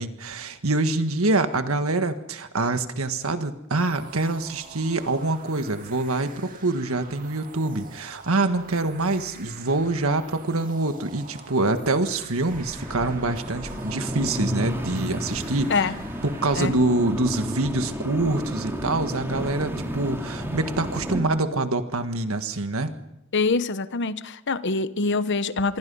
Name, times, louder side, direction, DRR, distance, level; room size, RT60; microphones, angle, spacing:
voice 1, 0.0-15.7 16.2-22.9, right 2 dB, 80° right, 8 dB, 1.7 m, -25 dB
sound 1, 3.8-16.6, right 4 dB, 40° right, 2.2 m, -46 dB
sound 2, 12.5-21.2, equal, 10° right, 3.1 m, -32 dB
voice 2, 23.3-25.8, left 4 dB, 55° left, 13 dB, 1.0 m, -24 dB
26.5 x 23.0 x 5.6 m, 0.90 s
head